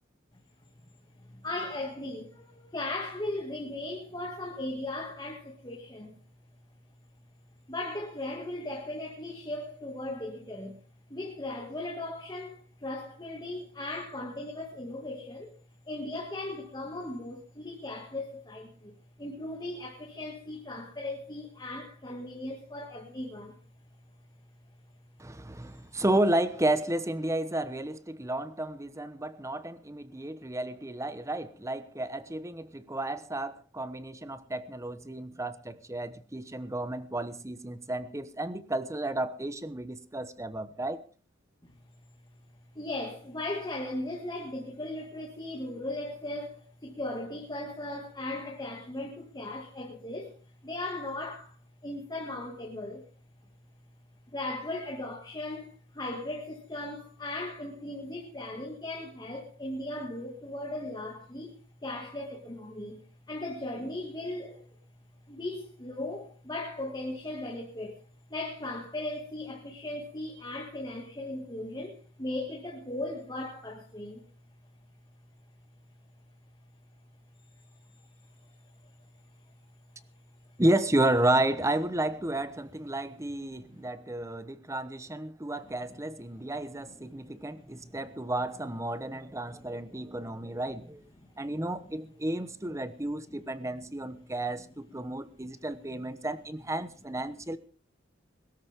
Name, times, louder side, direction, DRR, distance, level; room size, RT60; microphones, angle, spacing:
voice 1, 1.2-6.2 7.7-10.8 11.1-15.5 15.9-23.6 42.8-50.4 50.6-51.6 51.8-53.0 54.3-63.0 63.3-64.7 65.3-67.9 68.3-74.2 78.0-78.1 83.5-83.9 86.3-86.5 87.3-88.0 89.7-90.6 91.2-91.6 95.4-95.5, left 2 dB, 20° left, 2.2 m, -38 dB
voice 2, 25.2-41.0 80.6-91.0 91.4-97.6, right 1 dB, 15° right, 1.0 m, -32 dB
22.0 x 13.5 x 3.7 m
head